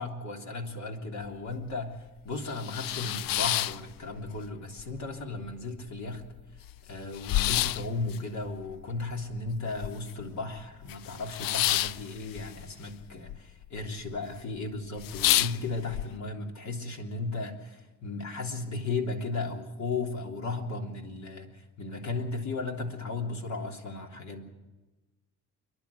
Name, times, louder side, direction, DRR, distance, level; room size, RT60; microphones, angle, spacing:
voice 1, 0.0-2.0 2.2-6.3 6.9-24.4, left 3 dB, 50° left, 2 dB, 3.4 m, -35 dB
sound 1, 1.2-1.3 1.7-1.8 2.3-4.5 4.8-5.5 5.9-6.0 6.1-10.3 10.6-13.4 13.6-14.2 14.6-14.7 15.0-16.0, left 14 dB, 70° left, 0.6 m, -30 dB
28.5 x 11.5 x 8.4 m, 1.2 s
cardioid pair, 100°, 35 cm